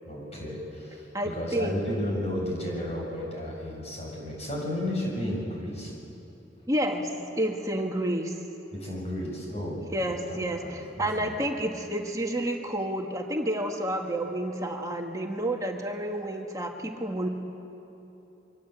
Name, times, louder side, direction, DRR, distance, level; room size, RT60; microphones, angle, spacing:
voice 1, 0.0-5.9 8.7-11.4, left 1 dB, 35° left, -2 dB, 8.0 m, -33 dB
voice 2, 1.1-1.8 6.7-7.1 7.4-8.4 9.9-17.3, right 1 dB, 20° right, 2 dB, 2.0 m, -30 dB
28.0 x 24.0 x 8.4 m, 3.0 s
head